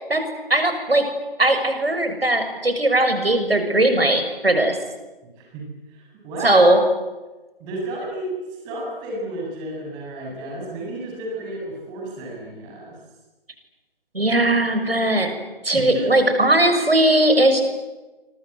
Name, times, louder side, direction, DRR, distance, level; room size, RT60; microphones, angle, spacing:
voice 1, 0.5-1.0 1.4-4.8 6.4-6.8 14.1-15.3 15.6-17.6, right 1 dB, 80° right, 7 dB, 6.5 m, -18 dB
voice 2, 5.2-6.8 7.6-13.0 15.7-16.1, right 2 dB, 15° right, -1 dB, 7.5 m, -32 dB
29.0 x 25.0 x 8.2 m, 1.2 s
figure-of-eight pair, 150°, 29 cm